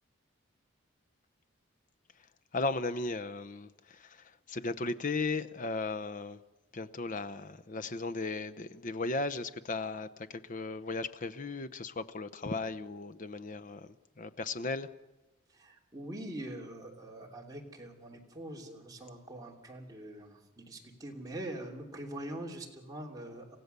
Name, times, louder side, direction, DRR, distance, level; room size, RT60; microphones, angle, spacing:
voice 1, 2.5-6.4 6.7-13.9 14.2-14.9, left 3 dB, 40° left, 0.8 m, -36 dB
voice 2, 15.5-23.6, right 1 dB, 20° right, 2.9 m, -43 dB
28.5 x 15.5 x 6.8 m
head